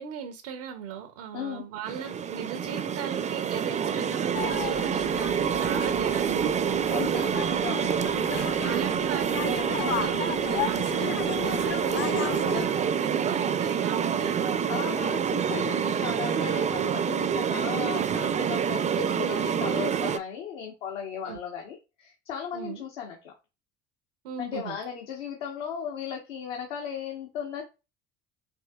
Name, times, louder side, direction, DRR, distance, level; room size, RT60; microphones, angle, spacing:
voice 1, 0.0-6.7 8.1-14.7 16.8-17.0 21.3-21.4 22.5-22.8 24.2-24.8, right 8 dB, 80° right, 0.6 m, -38 dB
voice 2, 1.3-1.6 6.9-8.0 14.7-23.3 24.4-27.6, left 8 dB, 80° left, 0.9 m, -36 dB
sound 1, 1.9-20.2, right 7 dB, 20° right, 0.3 m, -27 dB
sound 2, 4.3-12.7, left 9 dB, 35° left, 0.5 m, -35 dB
5.3 x 2.7 x 2.2 m
hypercardioid pair, 70°, 35 cm